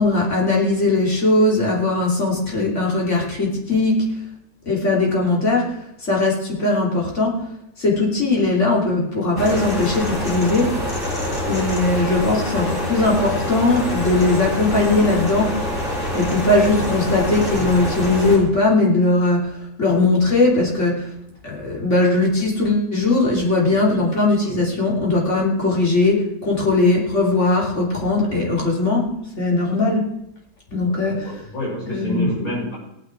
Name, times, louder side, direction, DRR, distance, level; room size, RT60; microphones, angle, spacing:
voice 1, 0.0-4.2 4.7-7.5 7.8-10.8 11.4-15.5 16.1-21.1 21.4-30.1 30.7-31.4 31.9-32.3, left 2 dB, 55° left, -2 dB, 3.5 m, -19 dB
sound 1, 9.4-18.4, left 1 dB, 35° left, 3.9 m, -25 dB
voice 2, 30.7-32.7, equal, 70° left, -7 dB, 7.1 m, -29 dB
17.5 x 9.3 x 4.7 m, 0.82 s
omnidirectional pair, 1.5 m